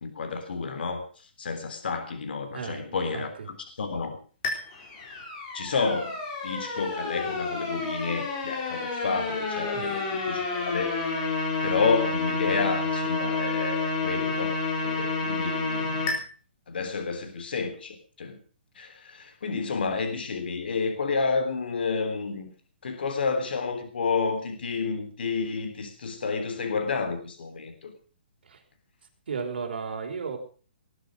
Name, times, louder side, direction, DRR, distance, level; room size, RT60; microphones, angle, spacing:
voice 1, 0.0-4.2 5.5-11.0 11.6-14.5 14.8-16.2 16.7-18.4 18.8-22.5 22.8-27.9, left 4 dB, 65° left, 8 dB, 3.5 m, -30 dB
voice 2, 2.5-3.2 9.7-9.8 28.5-28.6 29.3-30.4, right 5 dB, 65° right, 3 dB, 4.8 m, -34 dB
sound 1, 4.4-16.2, left 3 dB, 25° left, 4.3 m, -30 dB
20.0 x 9.8 x 6.5 m, 0.41 s
hypercardioid pair, 170°, 6 cm